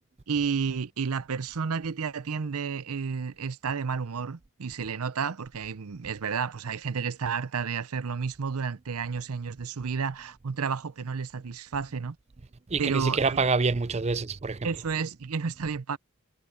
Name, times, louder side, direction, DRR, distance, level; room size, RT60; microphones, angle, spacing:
voice 1, 0.3-12.2 12.8-13.4 14.6-16.0, right 5 dB, 85° right, 0.7 m, -31 dB
voice 2, 12.7-14.7, right 4 dB, 30° right, 0.5 m, -26 dB
head